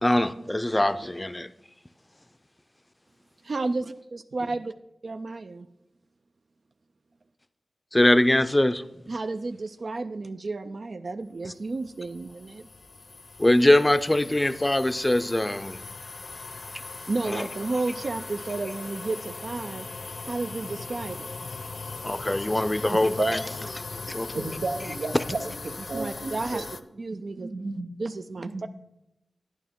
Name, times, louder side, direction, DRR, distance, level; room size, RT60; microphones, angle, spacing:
voice 1, 0.0-1.5 7.9-8.8 13.4-15.8 17.3-17.4 22.0-23.4 23.9-24.4 25.1-25.2, left 1 dB, 20° left, 13 dB, 0.5 m, -22 dB
voice 2, 3.4-4.7 5.0-5.6 9.1-12.7 17.1-19.9 20.2-21.3 25.9-26.6 27.0-27.5 28.0-28.7, right 3 dB, 65° right, 9 dB, 0.4 m, -32 dB
sound 1, 11.6-26.8, left 3 dB, 65° left, 0.6 m, -39 dB
voice 3, 22.9-23.6 24.3-25.5 25.9-26.7 27.4-27.9 28.4-28.7, right 3 dB, 80° right, 7 dB, 0.8 m, -32 dB
10.0 x 9.0 x 3.6 m, 0.88 s
cardioid pair, 55°, 0 cm